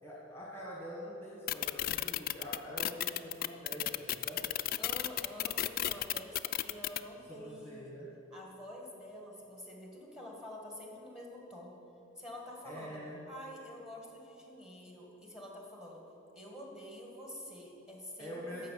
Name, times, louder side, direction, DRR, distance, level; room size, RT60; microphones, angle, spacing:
voice 1, 0.0-4.5 7.3-8.1 12.6-13.2 18.2-18.7, equal, 10° left, -4 dB, 1.5 m, -45 dB
quick static glitches, 1.5-7.0, left 13 dB, 45° left, 0.3 m, -33 dB
voice 2, 4.8-7.9 8.3-11.8 12.2-16.0 16.3-18.7, left 1 dB, 5° right, -1 dB, 1.9 m, -48 dB
14.0 x 5.6 x 7.6 m, 2.9 s
head